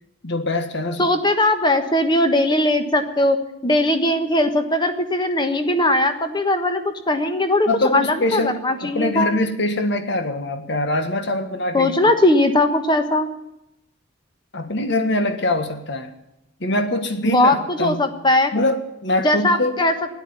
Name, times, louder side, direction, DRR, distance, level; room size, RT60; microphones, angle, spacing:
voice 1, 0.2-1.1 7.7-11.9 14.5-16.1 16.6-18.0 18.5-19.8, left 1 dB, 55° left, 1.6 m, -23 dB
voice 2, 1.0-9.4 11.7-13.3 17.2-18.5 19.2-19.9, left 1 dB, 20° left, 1.3 m, -19 dB
13.5 x 11.0 x 9.6 m
head